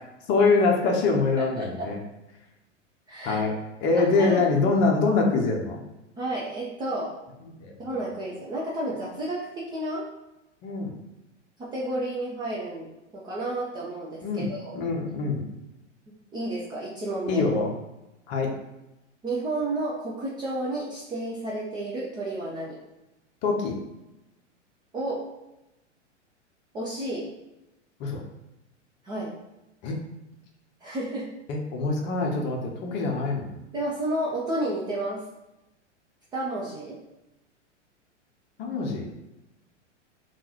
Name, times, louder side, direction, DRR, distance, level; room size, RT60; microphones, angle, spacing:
voice 1, 0.3-2.0 3.2-3.5 3.8-5.8 7.6-7.9 10.6-10.9 14.2-15.4 17.3-17.7 18.3-18.6 23.4-23.8 28.0-28.2 29.8-30.0 31.5-33.5 38.6-39.1, left 3 dB, 30° left, 1 dB, 0.8 m, -24 dB
voice 2, 1.4-1.9 3.1-3.4 3.9-4.4 6.2-7.1 7.8-10.1 11.6-14.8 16.3-17.5 19.2-22.8 24.9-25.3 26.7-27.3 29.0-29.4 30.8-31.3 33.7-35.2 36.3-37.0, right 1 dB, 10° right, -5 dB, 0.5 m, -31 dB
3.8 x 2.5 x 4.4 m, 0.94 s
figure-of-eight pair, 95°, 36 cm